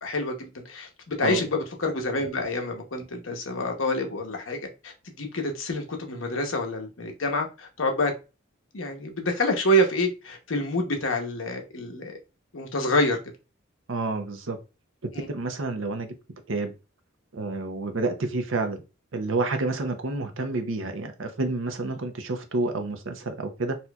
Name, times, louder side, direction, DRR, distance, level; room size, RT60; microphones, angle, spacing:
voice 1, 0.0-8.1 8.7-12.2 12.5-13.2 15.1-15.3, left 1 dB, 75° left, 0.9 m, -27 dB
voice 2, 13.9-14.6 15.3-16.1 16.5-16.7 17.3-18.8 19.1-23.8, right 3 dB, 75° right, 0.7 m, -29 dB
4.2 x 2.6 x 2.3 m
head